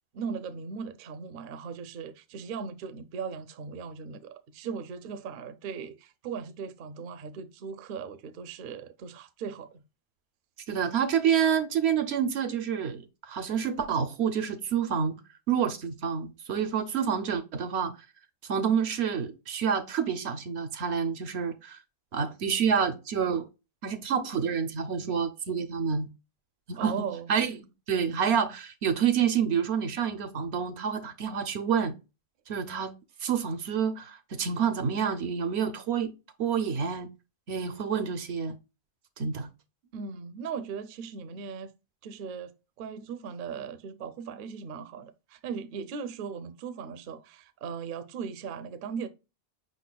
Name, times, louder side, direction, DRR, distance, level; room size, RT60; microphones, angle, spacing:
voice 1, 0.1-9.8 26.8-27.3 39.9-41.7 42.0-49.1, right 6 dB, 60° right, 0.6 m, -38 dB
voice 2, 10.7-15.2 15.5-17.9 18.5-21.8 22.1-23.5 23.8-26.1 26.7-27.6 27.9-31.9 32.5-32.9 33.2-36.1 36.4-37.1 37.5-38.6 39.2-39.5, right 7 dB, 85° right, 1.0 m, -28 dB
5.3 x 4.0 x 2.2 m
omnidirectional pair, 1.1 m